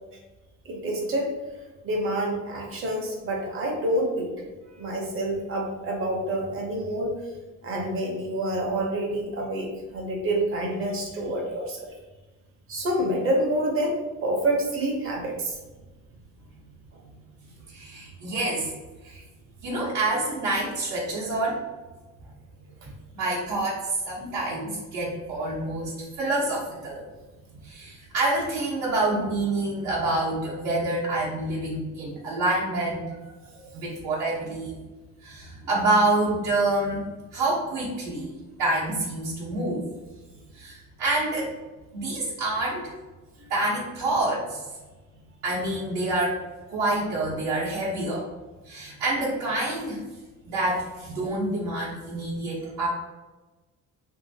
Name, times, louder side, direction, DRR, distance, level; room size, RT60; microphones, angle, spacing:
voice 1, 0.6-1.4 1.8-4.3 4.7-7.2 7.6-11.9 12.7-15.6 22.8-22.9 33.4-33.7 43.4-43.5, right 1 dB, 45° right, 0 dB, 0.8 m, -28 dB
voice 2, 17.7-18.7 19.0-19.2 19.6-21.6 23.1-27.0 27.6-33.0 33.7-34.8 35.2-37.0 37.3-39.8 40.5-41.5 41.9-42.9 43.5-44.7 45.4-46.4 46.7-48.3 48.6-50.0 50.4-52.9, right 2 dB, 75° right, -9 dB, 0.9 m, -27 dB
3.3 x 2.7 x 2.7 m, 1.2 s
cardioid pair, 175°, 29 cm